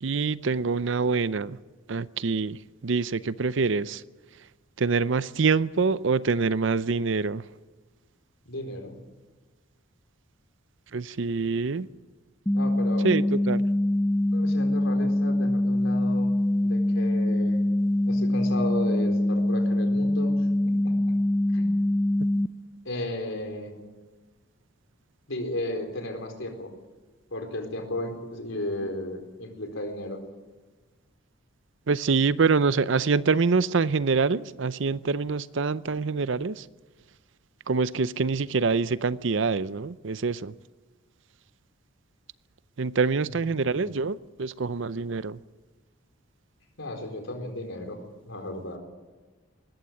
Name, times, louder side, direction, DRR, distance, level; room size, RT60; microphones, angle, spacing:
voice 1, 0.0-1.6 1.9-2.6 2.8-4.0 4.8-7.4 10.9-11.9 13.0-13.6 31.9-36.7 37.7-40.5 42.8-45.4, right 4 dB, 60° right, 0.6 m, -25 dB
voice 2, 8.5-9.0 12.5-13.1 14.3-16.3 16.6-17.6 18.1-20.4 20.7-20.9 21.5-21.7 22.8-23.8 25.3-26.7 27.3-30.2 43.3-44.0 46.8-48.8, left 1 dB, 70° left, 4.3 m, -34 dB
sound 1, 12.5-22.5, left 1 dB, 10° left, 0.6 m, -24 dB
19.5 x 15.0 x 9.4 m
head